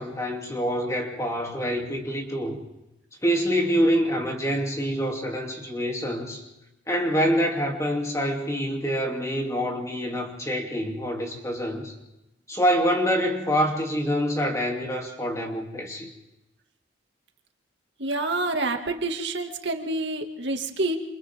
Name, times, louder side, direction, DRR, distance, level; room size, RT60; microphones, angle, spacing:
voice 1, 0.0-2.6 3.2-6.4 6.9-11.9 12.5-16.1, equal, 15° left, 1 dB, 2.9 m, -26 dB
voice 2, 18.0-21.0, right 2 dB, 65° right, 4 dB, 2.2 m, -28 dB
28.0 x 28.0 x 3.7 m, 0.96 s
head